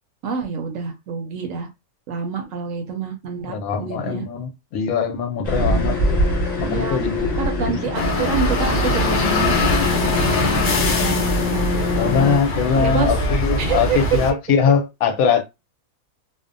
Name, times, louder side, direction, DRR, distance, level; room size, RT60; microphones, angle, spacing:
voice 1, 0.2-1.7 2.1-4.2 5.5-5.9 6.6-7.0 7.4-9.6 9.9-11.7 12.0-12.3 12.7-13.2 13.6-14.2, right 6 dB, 70° right, 0.9 m, -27 dB
voice 2, 3.5-6.2 6.6-7.3 12.0-15.4, left 6 dB, 75° left, 1.0 m, -21 dB
sound 1, 5.4-12.4, left 2 dB, 30° left, 1.0 m, -24 dB
sound 2, 7.9-14.3, left 1 dB, 90° left, 0.4 m, -22 dB
2.6 x 2.1 x 2.5 m
omnidirectional pair, 1.6 m